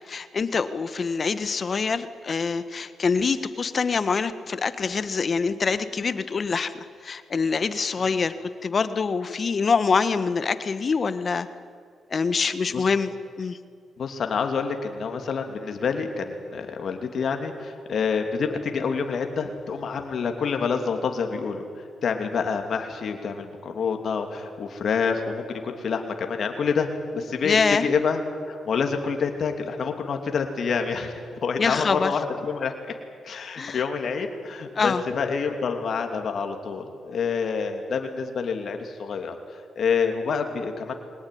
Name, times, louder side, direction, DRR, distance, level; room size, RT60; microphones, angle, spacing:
voice 1, 0.1-8.3 8.6-11.5 12.1-13.1 13.4-13.6 27.4-27.9 31.6-32.1 33.6-33.8 34.7-35.0, left 5 dB, 50° left, 12 dB, 1.4 m, -25 dB
voice 2, 14.0-21.7 22.0-28.2 28.5-32.9 33.2-41.0, left 5 dB, 65° left, 4 dB, 2.9 m, -27 dB
23.0 x 19.0 x 9.4 m, 2.2 s
cardioid pair, 65°, 0 cm